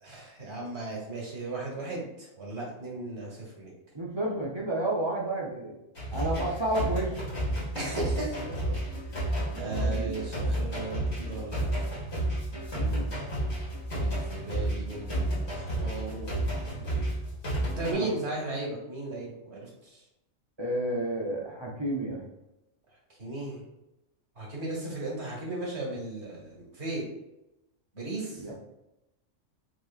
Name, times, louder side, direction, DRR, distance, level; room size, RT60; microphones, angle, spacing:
voice 1, 0.0-3.7 6.2-6.4 7.7-8.7 9.1-9.3 9.6-11.9 13.9-16.4 17.6-20.0 23.2-23.6 24.4-27.1 27.9-28.4, right 2 dB, 60° right, -3 dB, 1.7 m, -36 dB
voice 2, 3.9-5.8 6.1-7.2 9.5-10.1 12.7-13.1 15.4-15.5 16.1-17.0 17.9-18.1 20.6-22.2 28.4-28.5, right 1 dB, 25° right, -3 dB, 0.7 m, -32 dB
sound 1, 6.0-17.9, right 1 dB, 55° left, 2.1 m, -31 dB
6.3 x 3.0 x 2.4 m, 0.92 s
omnidirectional pair, 1.3 m